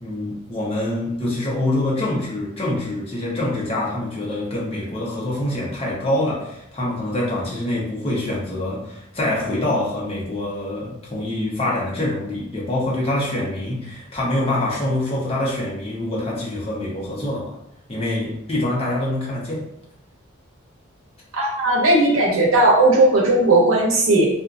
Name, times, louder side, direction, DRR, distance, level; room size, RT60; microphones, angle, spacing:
voice 1, 0.0-17.5 17.9-19.6, left 1 dB, 30° left, -5 dB, 0.8 m, -25 dB
voice 2, 21.3-24.3, right 2 dB, 85° right, -2 dB, 0.7 m, -16 dB
2.6 x 2.4 x 2.4 m, 0.74 s
head